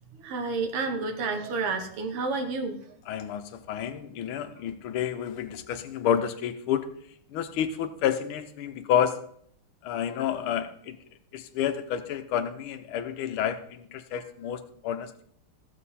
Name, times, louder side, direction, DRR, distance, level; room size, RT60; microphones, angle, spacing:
voice 1, 0.2-2.8, right 4 dB, 90° right, 5 dB, 2.1 m, -30 dB
voice 2, 3.1-6.9 7.3-9.2 9.8-11.0 11.3-15.2, left 9 dB, 75° left, 8 dB, 1.7 m, -30 dB
15.0 x 7.3 x 4.2 m, 0.65 s
omnidirectional pair, 2.4 m